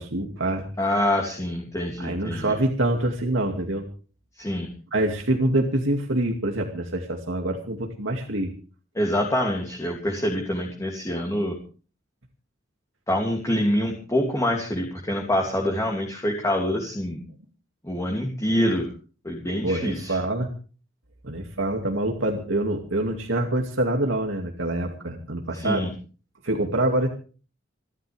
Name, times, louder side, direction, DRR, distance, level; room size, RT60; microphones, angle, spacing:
voice 1, 0.0-0.7 2.0-3.9 4.9-8.5 19.6-20.5 21.2-25.9 26.4-27.1, right 1 dB, 75° right, 2 dB, 2.4 m, -25 dB
voice 2, 0.8-2.5 4.4-4.7 8.9-11.6 13.1-17.2 17.8-18.9 19.2-20.2 25.5-25.9, left 1 dB, 15° left, 0 dB, 2.8 m, -25 dB
29.0 x 12.0 x 3.5 m, 0.38 s
head